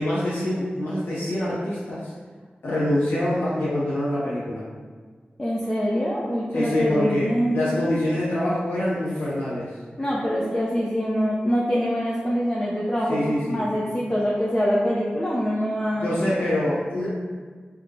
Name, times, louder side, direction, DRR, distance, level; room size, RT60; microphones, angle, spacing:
voice 1, 0.0-2.1 2.6-4.6 6.5-9.8 13.1-13.7 16.0-17.1, left 1 dB, 85° left, -9 dB, 0.8 m, -25 dB
voice 2, 5.4-7.6 10.0-13.2 13.5-16.2, equal, 20° left, -6 dB, 0.7 m, -24 dB
3.6 x 2.9 x 3.6 m, 1.5 s
cardioid pair, 45°, 4 cm